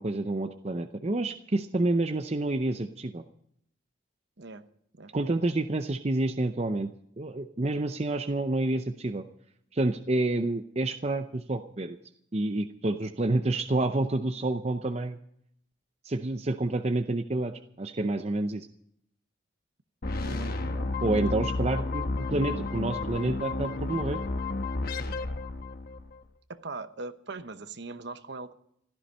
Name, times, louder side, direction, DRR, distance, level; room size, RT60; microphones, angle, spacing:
voice 1, 0.0-3.2 5.1-6.9 7.2-9.2 9.7-12.0 12.3-15.2 16.0-18.7 21.0-24.2, right 2 dB, 30° right, 8 dB, 0.6 m, -28 dB
sound 1, 20.0-26.2, left 3 dB, 45° left, 1.1 m, -32 dB
voice 2, 20.2-21.0 26.5-28.5, right 3 dB, 55° right, 11 dB, 1.0 m, -41 dB
16.0 x 13.5 x 5.5 m, 0.71 s
head